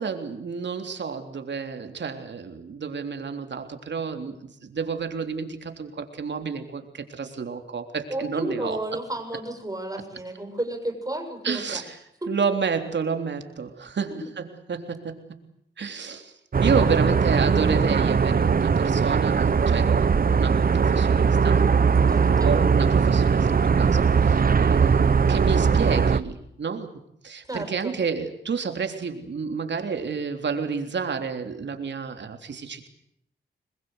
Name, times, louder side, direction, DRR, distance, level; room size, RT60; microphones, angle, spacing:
voice 1, 0.0-8.8 11.4-12.0 12.3-15.4 15.8-16.3 16.6-21.7 22.4-26.9 27.2-32.9, right 5 dB, 65° right, 6 dB, 3.5 m, -30 dB
voice 2, 8.1-11.8 12.2-12.3 14.1-14.2 16.7-16.9 22.1-22.5 27.5-28.0, right 1 dB, 20° right, 5 dB, 7.2 m, -32 dB
sound 1, 16.5-26.2, right 6 dB, 50° right, 1.1 m, -20 dB
26.5 x 21.5 x 8.1 m, 0.73 s
cardioid pair, 85°, 19 cm